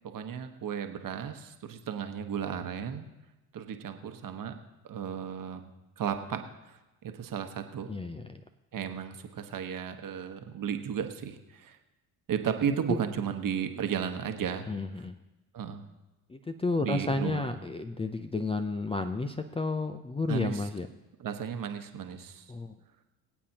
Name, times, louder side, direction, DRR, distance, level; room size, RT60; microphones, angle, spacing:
voice 1, 0.0-3.1 3.5-4.6 4.8-5.7 6.0-7.9 8.7-11.8 12.3-14.7 15.5-15.9 16.8-17.5 20.3-20.6 21.2-22.5, right 8 dB, 45° right, 7 dB, 1.3 m, -34 dB
voice 2, 7.9-8.4 12.9-13.0 14.7-15.2 16.3-20.9 22.5-22.8, left 3 dB, 10° left, 7 dB, 0.6 m, -32 dB
24.0 x 8.4 x 2.9 m, 1.0 s
hypercardioid pair, 60°, 48 cm